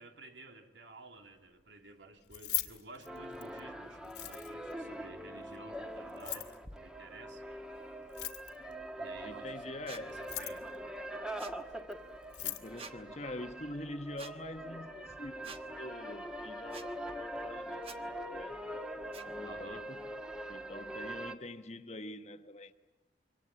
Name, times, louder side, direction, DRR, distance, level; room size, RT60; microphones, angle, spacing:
voice 1, 0.0-7.4 9.0-10.7 19.4-19.9, right 2 dB, 85° right, 2.9 m, -53 dB
Keys jangling, 2.2-3.6 4.0-4.7 6.1-6.6 8.0-8.7 10.1-10.8 11.9-12.0 12.2-12.7, left 17 dB, 70° left, 2.0 m, -39 dB
sound 1, 3.1-21.4, right 1 dB, 5° right, 1.5 m, -43 dB
voice 2, 9.2-10.2 12.4-17.1 17.4-18.6 19.2-20.1 20.5-22.7, left 1 dB, 35° left, 1.3 m, -45 dB
sound 2, 9.9-10.0 11.4-11.6 12.8-13.0 14.2-14.3 15.4-15.6 16.7-16.9 17.8-18.0 19.1-19.3, right 5 dB, 30° right, 1.2 m, -47 dB
25.5 x 24.5 x 8.9 m
head